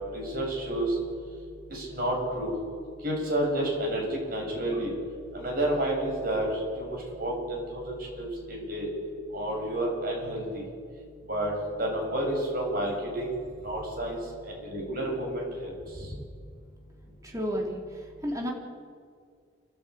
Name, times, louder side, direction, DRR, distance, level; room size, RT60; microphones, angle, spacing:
voice 1, 0.1-0.9 1.7-2.5 3.0-4.9 5.3-6.5 6.8-8.9 9.3-10.6 11.3-11.5 11.8-13.3 13.6-14.2 14.4-15.7, right 1 dB, 45° right, -2 dB, 7.6 m, -30 dB
voice 2, 15.9-16.2 17.2-18.5, equal, 15° right, -1 dB, 3.2 m, -33 dB
28.5 x 13.0 x 8.6 m, 2.1 s
head